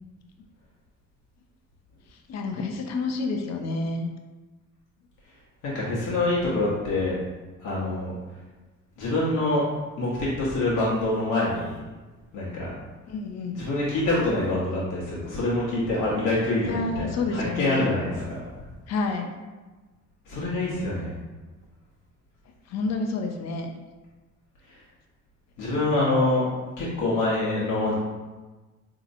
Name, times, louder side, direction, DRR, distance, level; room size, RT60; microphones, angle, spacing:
voice 1, 2.3-4.1 13.1-13.6 16.6-17.9 18.9-19.3 22.7-23.7, left 3 dB, 60° left, 3 dB, 0.6 m, -29 dB
voice 2, 5.6-7.2 7.6-8.1 9.0-9.7 10.0-11.7 12.3-12.7 13.5-18.4 20.3-21.1 24.7-24.8 25.6-26.5 26.8-27.9, left 2 dB, 90° left, -8 dB, 0.9 m, -25 dB
3.9 x 2.8 x 2.6 m, 1.2 s
cardioid pair, 90°, 30 cm